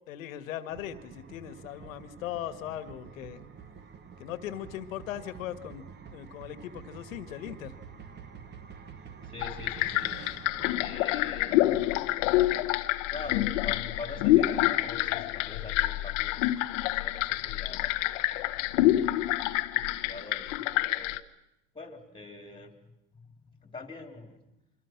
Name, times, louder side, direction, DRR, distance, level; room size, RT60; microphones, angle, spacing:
voice 1, 0.1-3.4 4.2-7.8, left 11 dB, 85° left, 11 dB, 2.0 m, -39 dB
sound 1, 0.7-13.4, right 6 dB, 25° right, 1.5 m, -48 dB
voice 2, 9.2-10.2 10.8-11.8 13.1-18.4 18.7-19.2 19.7-21.2 21.7-24.5, left 2 dB, 15° left, 6 dB, 3.4 m, -45 dB
sound 2, 9.4-21.2, left 16 dB, 65° left, 1.3 m, -27 dB
28.0 x 24.5 x 6.1 m, 0.88 s
supercardioid pair, 125°, 39 cm